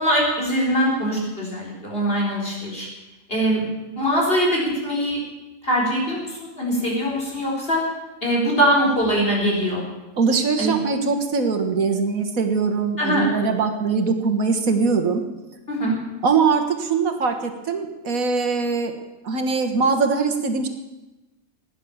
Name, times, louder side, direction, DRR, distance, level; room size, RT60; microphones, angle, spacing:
voice 1, 0.0-2.9 3.3-3.6 4.0-5.2 5.6-7.8 8.2-9.8 10.6-10.7 13.0-13.3 15.7-15.9, equal, 40° left, -3 dB, 4.6 m, -22 dB
voice 2, 10.2-15.2 16.2-18.9 19.2-20.7, right 4 dB, 80° right, 6 dB, 1.9 m, -22 dB
16.5 x 10.0 x 7.2 m, 1.1 s
omnidirectional pair, 1.4 m